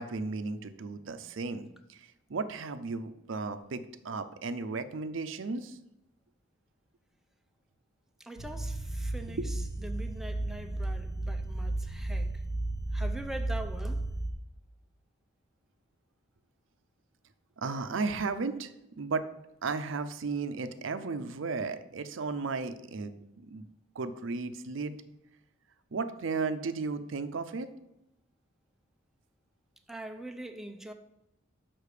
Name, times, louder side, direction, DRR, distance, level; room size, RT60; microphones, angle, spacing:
voice 1, 0.0-5.8 9.4-9.5 17.6-19.2 19.6-23.7 23.9-25.0 25.9-27.7, right 4 dB, 75° right, 0.6 m, -35 dB
voice 2, 8.2-12.4 12.9-14.2 29.9-30.9, right 1 dB, ahead, 0.5 m, -43 dB
sound 1, 8.4-14.3, right 2 dB, 50° left, 1.1 m, -34 dB
6.6 x 5.9 x 4.9 m
head